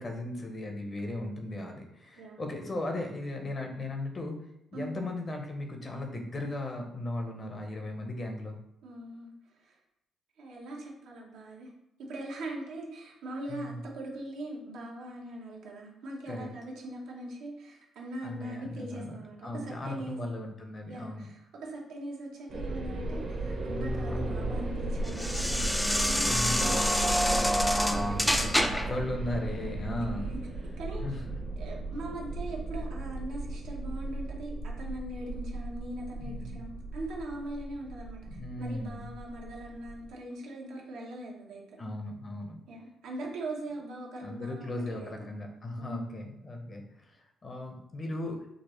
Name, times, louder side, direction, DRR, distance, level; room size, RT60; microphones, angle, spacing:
voice 1, 0.0-4.4 4.7-8.6 13.5-13.8 16.3-16.5 18.2-21.3 26.2-26.8 27.9-30.3 31.0-31.4 36.2-36.6 38.3-39.1 41.8-42.6 44.2-48.5, left 1 dB, 35° left, 3 dB, 0.7 m, -37 dB
voice 2, 8.8-9.3 9.6-9.8 10.4-11.7 12.0-20.2 20.9-28.8 30.1-30.3 30.6-31.0 31.6-41.8 42.7-45.2 45.8-46.2, right 1 dB, 85° right, -2 dB, 0.9 m, -41 dB
sound 1, 22.5-40.1, right 2 dB, 60° right, 1.0 m, -36 dB
sound 2, 23.2-29.0, equal, 5° left, 0.3 m, -28 dB
4.9 x 2.0 x 3.0 m, 0.84 s
cardioid pair, 90°, 0 cm